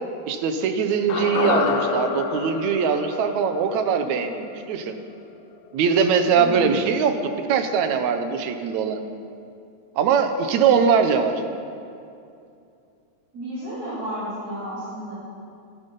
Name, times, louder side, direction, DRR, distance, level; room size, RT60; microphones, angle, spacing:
voice 1, 0.3-5.0 5.7-7.2 7.5-9.0 10.0-11.4, right 6 dB, 70° right, 7 dB, 2.2 m, -21 dB
sound 1, 1.1-5.4 5.7-5.8, left 5 dB, 70° left, 1.3 m, -28 dB
voice 2, 6.3-6.8 13.3-15.1, equal, 30° right, -12 dB, 3.9 m, -32 dB
15.5 x 13.0 x 5.4 m, 2.5 s
omnidirectional pair, 3.5 m